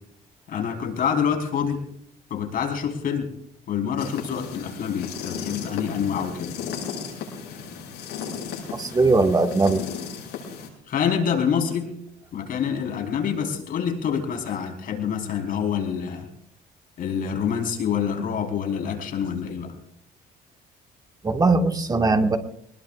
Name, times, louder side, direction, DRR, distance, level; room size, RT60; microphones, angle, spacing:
voice 1, 0.5-1.8 2.3-3.3 3.7-6.5 10.9-11.9 12.3-16.3 17.0-19.7, left 7 dB, 60° left, 3 dB, 4.3 m, -26 dB
sound 1, 4.0-10.7, left 6 dB, 80° left, 7.6 m, -35 dB
voice 2, 8.7-9.8 21.2-22.4, right 3 dB, 20° right, 4 dB, 1.8 m, -20 dB
24.5 x 20.5 x 2.5 m, 0.70 s
cardioid pair, 110°, 17 cm